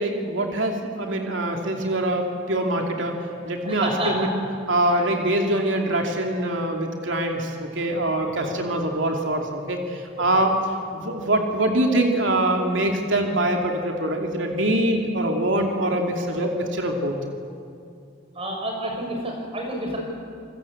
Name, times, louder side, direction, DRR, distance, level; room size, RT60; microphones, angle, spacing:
voice 1, 0.0-3.2 3.4-4.3 4.7-10.5 10.9-17.2, right 1 dB, 75° right, 2 dB, 2.7 m, -24 dB
voice 2, 3.6-4.3 4.9-5.1 8.2-8.5 10.2-10.3 18.3-20.0, right 1 dB, 30° right, 1 dB, 6.4 m, -29 dB
29.0 x 20.0 x 8.6 m, 2.4 s
head